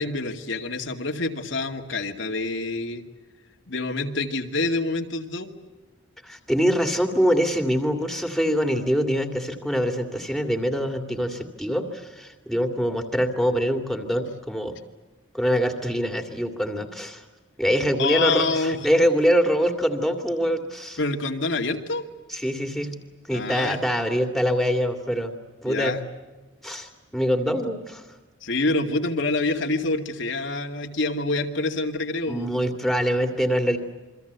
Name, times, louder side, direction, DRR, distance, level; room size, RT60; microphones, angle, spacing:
voice 1, 0.0-3.0 3.7-5.5 18.0-18.8 21.0-22.0 23.3-23.8 25.7-26.0 28.4-32.5, left 3 dB, 65° left, 3 dB, 2.3 m, -26 dB
voice 2, 6.2-14.8 15.3-17.2 17.6-21.0 22.3-22.9 23.3-25.3 25.6-25.9 26.6-28.1 32.3-33.8, equal, ahead, 6 dB, 2.4 m, -24 dB
28.5 x 24.0 x 8.2 m, 1.2 s
head